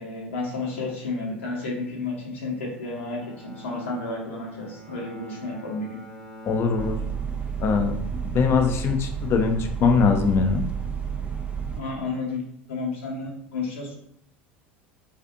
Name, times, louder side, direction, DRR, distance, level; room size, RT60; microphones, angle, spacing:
voice 1, 0.0-3.2 3.4-6.0 11.7-12.4 12.7-14.0, left 3 dB, 75° left, -3 dB, 0.9 m, -31 dB
Bowed string instrument, 2.7-8.0, equal, 5° left, 0.8 m, -44 dB
voice 2, 6.4-7.0 7.6-10.6, left 5 dB, 40° left, 5 dB, 0.5 m, -22 dB
sound 1, 6.8-11.8, right 7 dB, 15° right, 0.4 m, -31 dB
2.5 x 2.4 x 2.5 m, 0.73 s
figure-of-eight pair, 75°, 7 cm